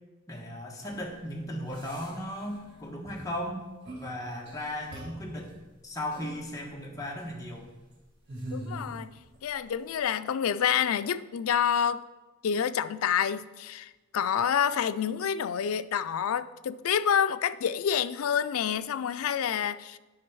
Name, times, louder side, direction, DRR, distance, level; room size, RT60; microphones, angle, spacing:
voice 1, 0.3-3.6 4.0-7.7, left 1 dB, 15° left, 1.3 m, -36 dB
sound 1, 0.8-1.0 1.7-2.7 3.0-3.3 3.8-4.2 4.5-5.4 6.1-6.4 7.0-7.4 8.3-9.4 9.7-9.8, right 1 dB, 55° right, 1.7 m, -42 dB
voice 2, 8.5-9.2 9.4-12.0 12.4-20.0, left 8 dB, 80° left, 0.4 m, -28 dB
10.0 x 5.2 x 4.7 m
head